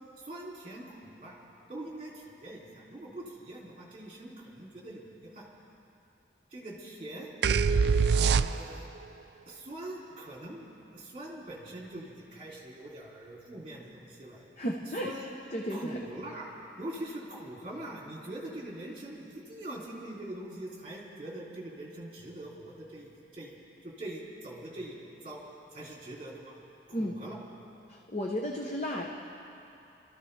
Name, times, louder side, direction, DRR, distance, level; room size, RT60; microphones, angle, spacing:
voice 1, 0.2-1.4 1.7-5.5 6.5-7.3 8.3-8.9 9.5-10.7 10.9-14.5 15.0-15.4 15.7-16.5 16.8-23.5 23.8-25.0 25.2-25.4 25.7-26.5 26.9-27.4, right 1 dB, 30° right, -4 dB, 2.8 m, -43 dB
sound 1, 7.4-9.0, right 5 dB, 65° right, 0.4 m, -24 dB
voice 2, 14.6-15.1 15.5-16.1 26.9-27.2 27.9-29.1, equal, 40° left, 0 dB, 0.9 m, -33 dB
28.0 x 14.0 x 3.3 m, 2.8 s
head